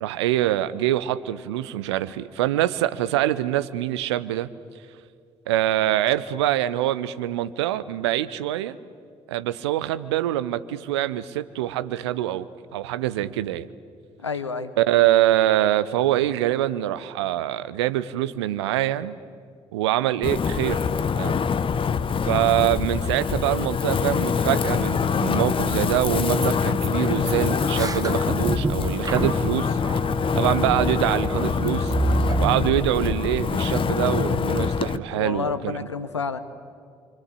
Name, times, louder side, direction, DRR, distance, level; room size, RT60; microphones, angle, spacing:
voice 1, 0.0-4.5 5.5-8.8 9.3-12.5 12.7-13.7 14.8-19.2 19.7-20.8 21.1-21.4 22.2-29.8 30.3-31.9 32.4-35.8, right 13 dB, 70° right, 15 dB, 0.8 m, -24 dB
voice 2, 14.2-14.7 35.1-36.4, left 5 dB, 85° left, 12 dB, 1.0 m, -29 dB
Wind, 20.2-35.0, left 6 dB, 35° left, 1.1 m, -24 dB
sound 1, 25.6-25.7 26.0-26.1 26.4-26.5 26.8-32.6, right 3 dB, 25° right, 1.0 m, -28 dB
27.5 x 25.5 x 8.5 m, 2.2 s
figure-of-eight pair, 45°, 14 cm